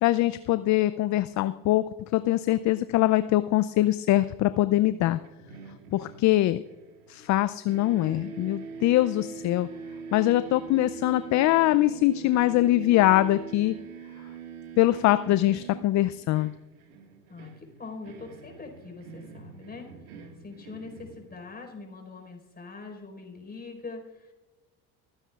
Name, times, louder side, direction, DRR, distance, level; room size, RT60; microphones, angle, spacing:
voice 1, 0.0-1.8 2.1-5.2 5.9-6.6 7.1-9.7 10.1-13.8 14.8-16.5, left 15 dB, 40° left, 14 dB, 0.5 m, -23 dB
sound 1, 5.2-7.4 7.7-21.7, right 5 dB, 80° right, 1.9 m, -43 dB
voice 2, 17.3-19.9 20.4-24.3, left 4 dB, 20° left, 2 dB, 4.6 m, -43 dB
26.0 x 9.8 x 2.4 m, 1.2 s
hypercardioid pair, 75°, 44 cm